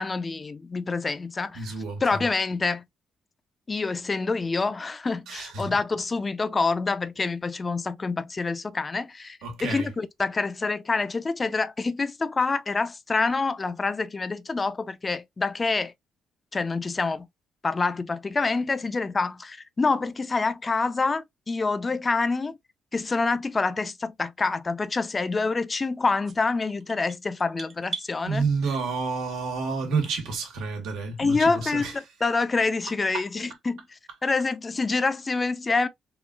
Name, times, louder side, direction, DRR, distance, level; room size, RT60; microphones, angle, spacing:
voice 1, 0.0-1.7 2.0-2.8 3.7-15.9 16.5-17.3 17.6-22.6 22.9-28.4 31.2-35.9, left 4 dB, 30° left, 0.4 m, -27 dB
voice 2, 1.5-2.2 5.3-5.8 9.4-9.9 28.2-31.9 33.1-33.2, right 4 dB, 90° right, 1.3 m, -29 dB
sound 1, 26.2-28.1, right 5 dB, 45° right, 0.6 m, -38 dB
3.7 x 2.3 x 2.3 m
cardioid pair, 90°, 0 cm